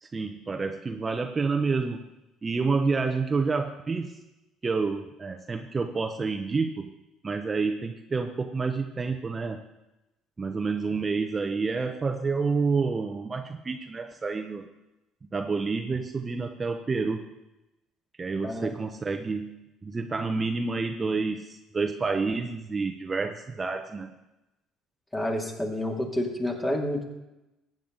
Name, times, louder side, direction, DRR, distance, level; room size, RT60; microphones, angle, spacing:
voice 1, 0.0-2.1 2.4-4.2 4.6-6.9 7.2-9.6 10.4-14.7 15.3-17.3 18.2-24.1, right 4 dB, 25° right, 6 dB, 0.8 m, -29 dB
voice 2, 25.1-27.0, left 1 dB, 15° left, 1 dB, 2.5 m, -29 dB
14.5 x 9.0 x 3.9 m, 0.96 s
supercardioid pair, 85°, 0 cm